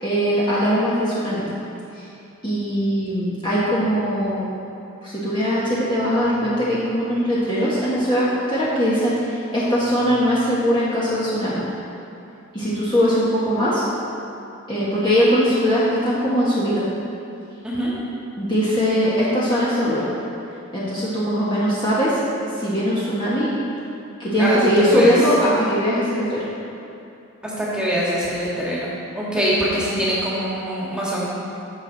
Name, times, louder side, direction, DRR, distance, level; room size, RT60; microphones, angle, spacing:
voice 1, 0.0-1.4 1.9-2.0 2.4-4.5 5.0-11.6 12.5-13.8 14.7-16.8 18.4-20.1 20.7-22.2 22.6-23.5 24.2-26.4, equal, 20° left, -9 dB, 1.6 m, -20 dB
voice 2, 24.4-25.1 27.4-31.2, equal, 5° right, -7 dB, 2.1 m, -23 dB
15.0 x 6.3 x 4.1 m, 2.8 s
head